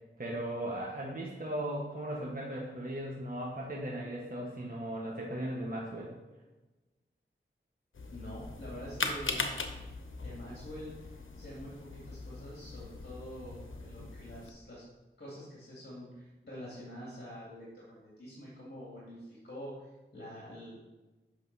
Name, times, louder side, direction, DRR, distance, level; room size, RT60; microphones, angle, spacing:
voice 1, 0.2-6.1, right 1 dB, 45° right, -3 dB, 1.4 m, -37 dB
sound 1, 7.9-14.5, left 3 dB, 75° left, 0.8 m, -40 dB
voice 2, 8.1-9.4 10.2-14.8 15.2-20.9, equal, 55° left, -7 dB, 2.4 m, -46 dB
8.1 x 6.0 x 4.1 m, 1.1 s
wide cardioid pair, 45°, 21 cm